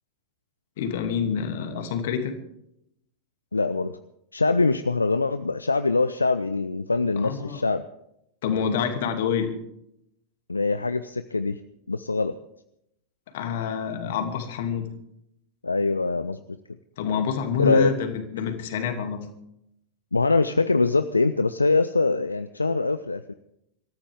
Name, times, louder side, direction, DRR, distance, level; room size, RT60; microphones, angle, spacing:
voice 1, 0.8-2.4 7.2-7.6 8.4-9.5 13.3-14.9 17.0-19.3, left 7 dB, 55° left, 6 dB, 2.6 m, -27 dB
voice 2, 3.5-4.0 4.3-7.8 10.5-11.6 11.9-12.4 15.6-16.4 17.6-17.9 20.1-23.3, left 3 dB, 80° left, 12 dB, 0.5 m, -23 dB
25.5 x 14.0 x 3.6 m, 0.78 s
figure-of-eight pair, 90°, 0 cm